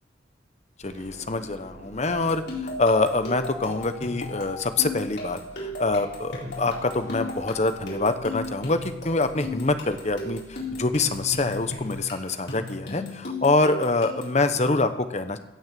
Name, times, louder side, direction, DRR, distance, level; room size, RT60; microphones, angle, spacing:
voice 1, 0.8-15.4, left 3 dB, 40° left, 9 dB, 0.9 m, -25 dB
sound 1, 0.8-12.0, right 1 dB, 50° right, 1.5 m, -48 dB
sound 2, 2.1-14.4, left 1 dB, 65° left, 4.1 m, -35 dB
16.5 x 6.4 x 7.5 m, 0.91 s
head